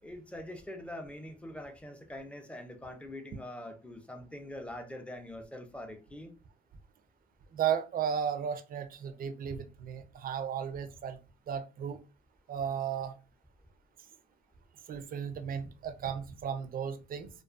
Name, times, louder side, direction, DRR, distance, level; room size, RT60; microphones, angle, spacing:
voice 1, 0.0-6.3, left 1 dB, 5° left, 0.5 m, -44 dB
voice 2, 7.5-11.2 11.5-12.0 12.5-13.1 14.9-17.3, right 8 dB, 45° right, 0.4 m, -34 dB
2.4 x 2.3 x 2.4 m
cardioid pair, 90°, 20 cm